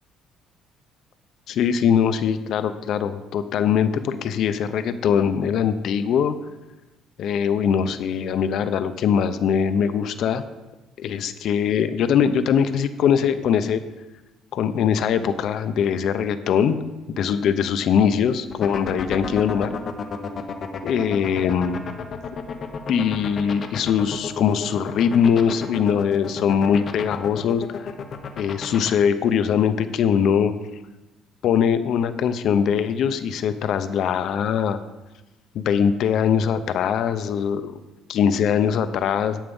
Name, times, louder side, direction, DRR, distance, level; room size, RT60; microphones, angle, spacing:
voice 1, 1.5-6.4 7.2-10.4 11.0-13.8 14.5-16.8 17.1-19.8 20.8-21.8 22.9-27.9 28.4-30.5 31.4-34.8 35.5-37.8 38.1-39.4, left 7 dB, 55° left, 11 dB, 0.7 m, -22 dB
sound 1, 18.5-28.9, left 6 dB, 35° left, 1.0 m, -31 dB
10.5 x 9.1 x 5.4 m, 1.0 s
cardioid pair, 150°, 0 cm